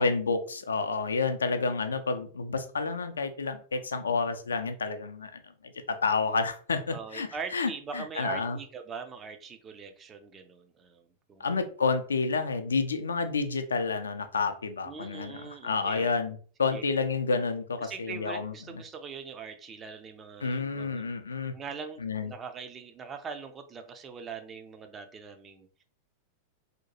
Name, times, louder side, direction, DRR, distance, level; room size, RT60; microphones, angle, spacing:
voice 1, 0.0-5.4 5.9-7.3 7.5-8.6 11.4-18.5 20.4-21.5 22.0-22.3, left 4 dB, 70° left, 8 dB, 0.3 m, -29 dB
voice 2, 6.9-11.5 14.8-16.1 16.7-16.8 17.8-21.1 21.5-25.8, right 6 dB, 25° right, 6 dB, 0.4 m, -42 dB
2.8 x 2.2 x 2.7 m, 0.43 s
figure-of-eight pair, 90°, 0 cm